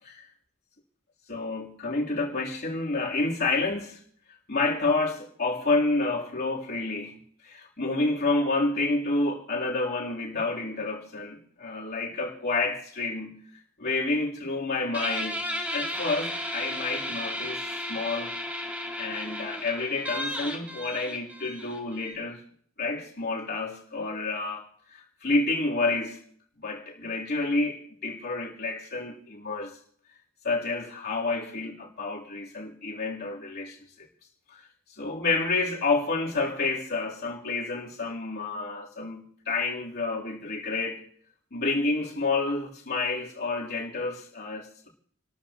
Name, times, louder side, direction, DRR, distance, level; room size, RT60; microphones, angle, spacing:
voice 1, 1.3-4.0 4.5-13.4 13.8-17.6 17.9-18.3 19.0-22.4 22.8-26.2 26.6-29.8 30.4-34.1 34.5-41.0 41.5-44.9, left 3 dB, 50° left, 3.2 m, -29 dB
Guitar, 14.9-22.1, left 1 dB, 10° right, 2.8 m, -34 dB
29.0 x 13.0 x 2.9 m
head